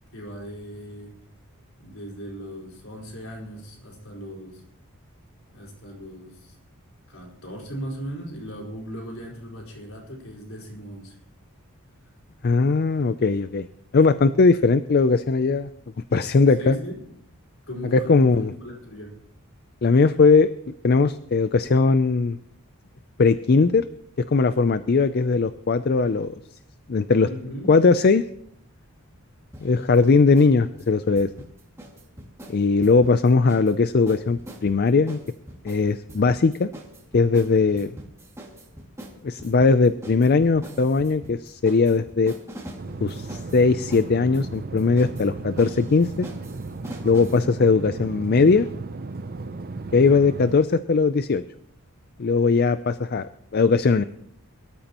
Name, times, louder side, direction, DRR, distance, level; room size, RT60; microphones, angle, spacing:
voice 1, 0.1-1.1 1.8-4.6 5.5-6.6 7.1-11.2 16.5-17.0 17.7-19.2 27.1-27.7 29.8-29.9 47.6-47.8, equal, 65° left, -2 dB, 4.8 m, -38 dB
voice 2, 12.4-13.6 13.9-15.7 16.1-16.8 18.1-18.5 19.8-20.5 20.8-22.4 23.2-23.8 24.3-26.3 26.9-27.3 27.7-28.2 29.6-31.3 32.5-35.2 35.6-36.7 37.1-37.9 39.2-42.3 43.0-46.3 47.0-48.7 49.9-51.4 52.2-53.3 53.5-54.0, left 4 dB, 45° left, 12 dB, 0.4 m, -19 dB
sound 1, 29.5-30.5 30.8-33.7 34.1-47.4, right 1 dB, 15° right, 2.2 m, -43 dB
sound 2, 42.8-50.6, right 3 dB, 40° right, 0.6 m, -35 dB
23.0 x 13.0 x 3.0 m, 0.70 s
head